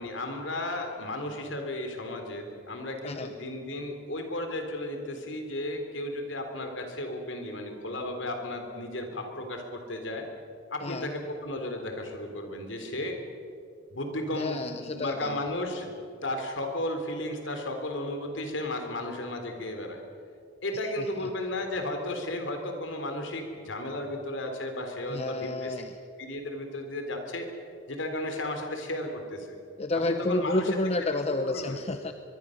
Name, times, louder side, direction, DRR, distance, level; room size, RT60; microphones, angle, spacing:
voice 1, 0.0-10.3 10.7-13.2 13.9-20.0 20.6-25.8 26.2-27.5 27.9-29.6 29.9-30.8 31.4-31.8, left 1 dB, 65° left, 4 dB, 3.6 m, -34 dB
voice 2, 14.3-15.4 21.0-21.1 25.1-25.9 29.8-32.1, left 2 dB, 30° left, 8 dB, 0.8 m, -30 dB
23.0 x 23.0 x 6.6 m, 2.5 s
head